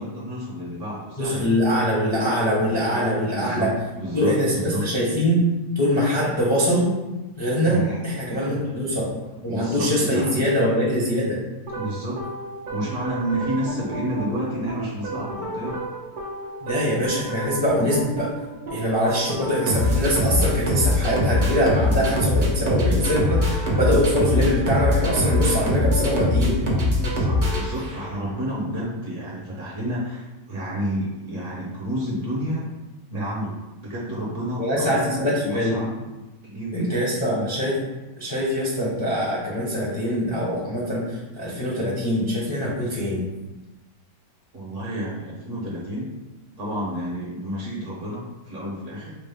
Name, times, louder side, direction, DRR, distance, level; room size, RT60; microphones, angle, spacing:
voice 1, 0.0-1.5 2.7-3.0 3.3-3.7 4.0-4.9 7.5-8.0 8.3-8.6 9.5-10.5 11.7-12.2 12.7-15.8 27.0-32.7 33.1-33.5 33.8-36.0 36.4-36.9 37.2-37.5 44.5-46.1 46.6-49.2, equal, 55° right, -4 dB, 1.0 m, -30 dB
voice 2, 1.2-3.7 4.1-5.4 5.7-6.9 7.3-7.8 8.0-9.0 9.4-11.4 16.6-18.3 18.7-26.6 34.6-35.8 36.7-37.7 38.2-43.2, equal, 30° left, -7 dB, 0.5 m, -23 dB
sound 1, 11.7-28.3, left 1 dB, 80° right, 0.4 m, -24 dB
5.1 x 2.1 x 3.4 m, 1.1 s
omnidirectional pair, 1.9 m